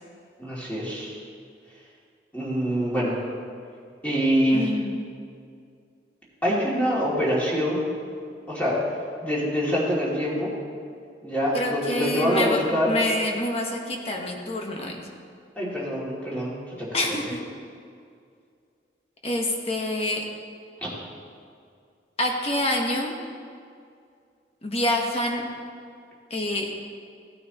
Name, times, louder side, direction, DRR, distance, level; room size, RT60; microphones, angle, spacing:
voice 1, 0.4-1.2 2.3-3.2 4.0-4.7 6.4-7.8 8.5-8.8 9.2-10.5 11.2-12.9 15.6-16.5 16.8-17.2 20.8-20.9, equal, 10° left, -7 dB, 2.7 m, -25 dB
voice 2, 4.5-5.0 11.5-15.0 16.9-17.4 19.2-20.2 22.2-23.1 24.6-25.4 26.3-26.7, left 1 dB, 35° left, 1 dB, 1.2 m, -27 dB
16.5 x 9.2 x 3.0 m, 2.3 s
head